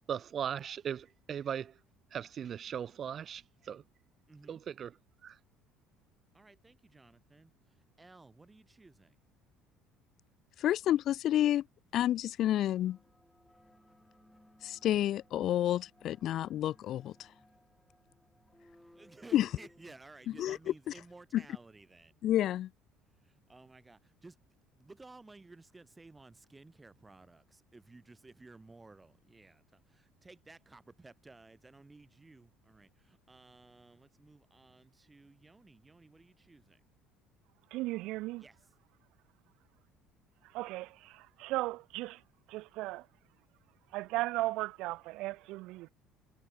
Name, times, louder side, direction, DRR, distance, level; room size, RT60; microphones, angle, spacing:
voice 1, 0.1-1.7 2.1-3.8 4.5-4.9 5.2-5.4, right 8 dB, 40° right, 0.3 m, -38 dB
voice 2, 4.3-4.6 6.3-7.5 8.0-9.2 18.9-22.2 23.2-24.4 24.8-36.8 38.4-38.6, right 3 dB, 15° right, 3.3 m, -56 dB
voice 3, 10.6-11.6 11.9-13.0 14.6-17.1 19.3-19.5 20.4-20.6 21.3-21.4 22.2-22.7, left 12 dB, 55° left, 0.6 m, -29 dB
sound 1, 12.7-19.9, left 1 dB, 5° left, 6.7 m, -63 dB
voice 4, 37.7-38.5 40.4-42.2 42.5-43.1 43.9-45.9, right 19 dB, 70° right, 1.1 m, -36 dB
cardioid pair, 125°, 0 cm